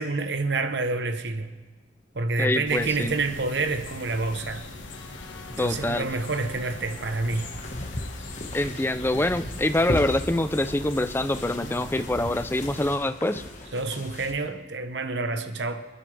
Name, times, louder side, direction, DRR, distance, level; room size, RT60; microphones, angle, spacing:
voice 1, 0.0-1.5 2.1-4.6 5.5-7.5 13.7-15.9, right 3 dB, 70° right, 0.9 m, -28 dB
voice 2, 2.4-3.2 5.6-6.0 8.5-13.4, left 1 dB, 10° left, 0.5 m, -25 dB
sound 1, 2.7-12.9, left 2 dB, 85° left, 1.6 m, -40 dB
sound 2, 7.3-14.3, left 1 dB, 40° left, 1.4 m, -36 dB
26.5 x 11.0 x 3.4 m
head